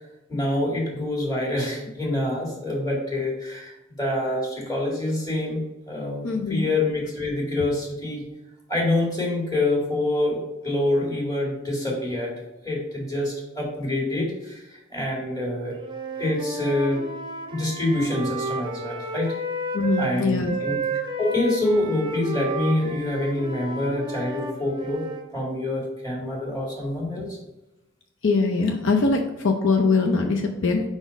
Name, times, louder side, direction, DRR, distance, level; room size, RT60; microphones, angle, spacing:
voice 1, 0.3-8.3 8.7-15.8 16.2-17.1 17.5-19.4 20.0-20.8 21.2-25.1 25.3-27.4, left 1 dB, 20° left, -3 dB, 2.1 m, -26 dB
voice 2, 6.2-6.7 19.7-20.6 28.2-30.8, left 3 dB, 65° left, 2 dB, 0.6 m, -22 dB
Wind instrument woodwind instrument, 15.7-20.1 20.4-25.3, right 2 dB, 20° right, 0.7 m, -32 dB
5.0 x 4.1 x 5.1 m, 0.97 s
head